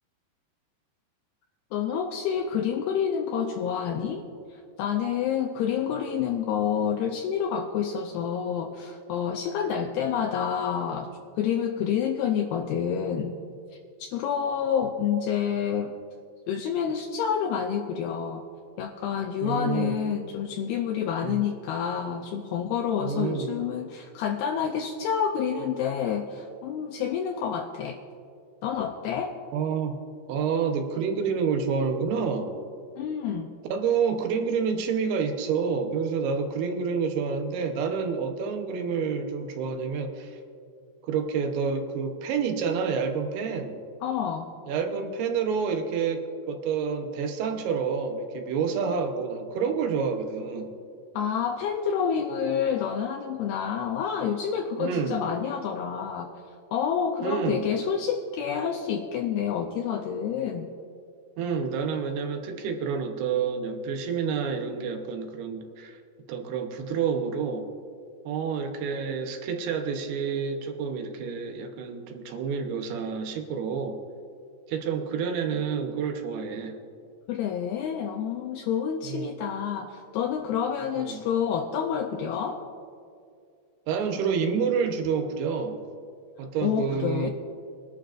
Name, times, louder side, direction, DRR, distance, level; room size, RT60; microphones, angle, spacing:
voice 1, 1.7-4.2 4.5-11.1 11.4-13.4 14.0-15.9 16.5-18.4 18.8-28.0 28.6-29.3 33.0-33.5 44.0-44.5 51.2-56.3 56.7-60.7 77.3-82.6 86.6-87.3, left 7 dB, 85° left, 3 dB, 2.2 m, -28 dB
voice 2, 19.4-20.0 21.2-21.4 23.0-23.5 29.5-30.0 30.3-32.5 33.7-40.4 41.0-43.8 44.7-46.2 46.5-50.7 54.8-55.2 57.2-57.7 61.4-66.0 66.3-67.6 68.3-74.0 74.7-76.8 79.0-79.3 81.0-81.2 83.9-85.8 86.4-87.3, right 6 dB, 75° right, 5 dB, 2.7 m, -28 dB
23.0 x 11.5 x 2.5 m, 2.3 s
omnidirectional pair, 5.1 m